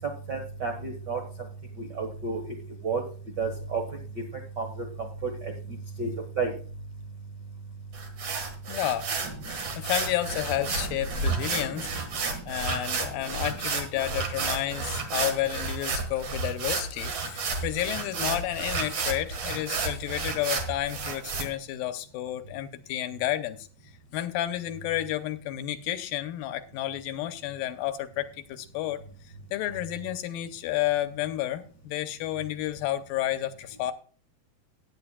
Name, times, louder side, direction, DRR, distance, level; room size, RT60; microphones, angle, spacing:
voice 1, 0.3-1.2 1.8-2.4 2.8-3.0 3.4-3.8 4.6-4.8 5.2-5.5 6.0-6.1 6.4-6.5 11.3-11.4 12.2-12.4, right 4 dB, 65° right, 3 dB, 1.0 m, -30 dB
sound 1, 7.9-21.4, right 4 dB, 50° right, 2.3 m, -31 dB
voice 2, 8.7-9.1 9.5-23.7 24.1-29.0 29.5-33.9, left 13 dB, 85° left, 10 dB, 2.4 m, -31 dB
17.0 x 9.4 x 2.2 m, 0.41 s
omnidirectional pair, 4.2 m